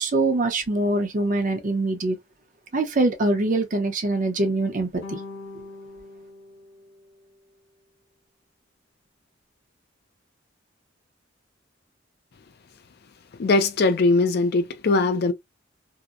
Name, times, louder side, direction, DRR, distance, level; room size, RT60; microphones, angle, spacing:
voice 1, 0.0-2.2 2.7-5.2, right 2 dB, 40° right, 0.6 m, -23 dB
sound 1, 5.0-7.6, left 3 dB, 85° left, 0.8 m, -42 dB
voice 2, 13.4-15.3, left 3 dB, 55° left, 0.4 m, -20 dB
2.7 x 2.0 x 2.3 m
head